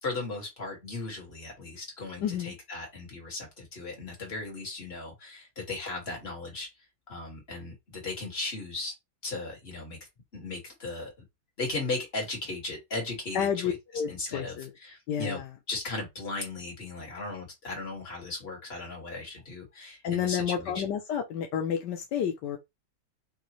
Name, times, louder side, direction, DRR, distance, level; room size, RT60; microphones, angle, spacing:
voice 1, 0.0-6.7 7.1-8.9 9.2-10.0 10.3-11.2 11.6-13.8 14.1-15.4 15.7-20.8, left 3 dB, 35° left, 2.1 m, -37 dB
voice 2, 2.2-2.5 13.3-14.7 15.1-15.5 20.0-22.6, left 8 dB, 80° left, 1.3 m, -30 dB
5.4 x 2.7 x 3.0 m
omnidirectional pair, 1.8 m